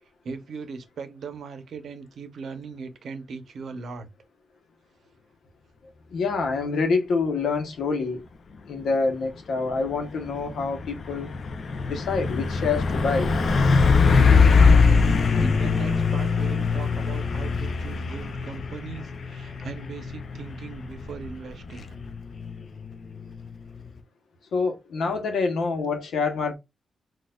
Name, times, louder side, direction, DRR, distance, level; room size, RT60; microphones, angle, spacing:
voice 1, 0.2-4.1 14.6-15.1 15.4-21.9, right 5 dB, 65° right, 0.7 m, -39 dB
voice 2, 6.1-8.2 8.7-11.3 11.8-13.3 24.5-26.5, left 4 dB, 85° left, 0.8 m, -26 dB
Truck, 9.7-24.0, left 4 dB, 50° left, 0.4 m, -23 dB
4.1 x 2.3 x 2.3 m
wide cardioid pair, 160°, 0 cm